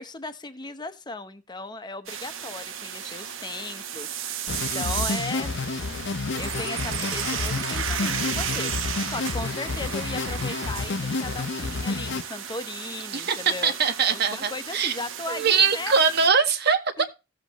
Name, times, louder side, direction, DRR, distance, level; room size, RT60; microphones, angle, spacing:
voice 1, 0.0-4.4 4.7-5.5 6.3-13.7 14.1-15.9 17.0-17.1, left 3 dB, 20° left, 0.9 m, -36 dB
sound 1, 2.1-16.3, right 8 dB, 85° right, 1.1 m, -34 dB
sound 2, 4.5-12.2, left 4 dB, 60° left, 0.6 m, -30 dB
voice 2, 13.6-14.9 15.3-16.8, right 6 dB, 55° right, 1.3 m, -22 dB
16.0 x 7.5 x 3.0 m
head